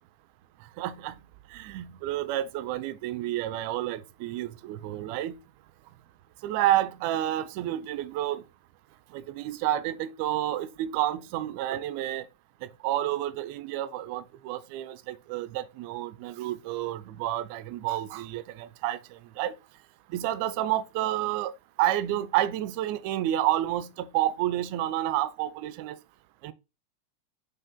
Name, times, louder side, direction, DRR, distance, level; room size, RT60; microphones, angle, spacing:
voice 1, 0.8-1.1 1.5-5.4 6.4-8.4 9.1-12.2 12.8-19.0 19.4-19.5 20.1-21.5 21.8-26.0 26.4-26.5, right 13 dB, 45° right, 0.4 m, -29 dB
4.8 x 2.5 x 3.7 m
figure-of-eight pair, 90°, 0 cm